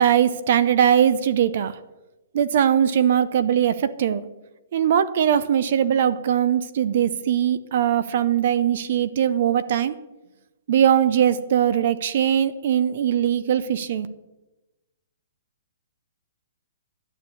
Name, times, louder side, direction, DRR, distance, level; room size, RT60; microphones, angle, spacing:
voice 1, 0.0-1.8 2.3-4.3 4.7-10.0 10.7-14.1, right 9 dB, 40° right, 15 dB, 0.6 m, -20 dB
12.5 x 9.6 x 8.4 m, 1.0 s
hypercardioid pair, 180°, 0 cm